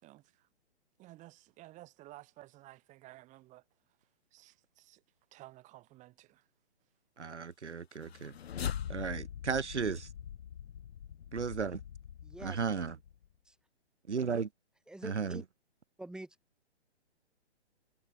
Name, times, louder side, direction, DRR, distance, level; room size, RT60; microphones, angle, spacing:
voice 1, 0.0-0.5 1.0-3.6 4.3-5.0 5.3-6.5, right 17 dB, 20° right, 3.6 m, -54 dB
voice 2, 7.2-8.3 8.9-10.1 11.3-11.8 12.4-12.9 14.1-14.5 15.0-15.4, right 5 dB, 85° right, 1.2 m, -34 dB
sound 1, 7.9-13.3, left 9 dB, 65° left, 0.9 m, -42 dB
voice 3, 12.2-12.6 13.4-13.6 14.9-15.4 16.0-16.4, right 1 dB, ahead, 5.2 m, -46 dB
figure-of-eight pair, 135°, 34 cm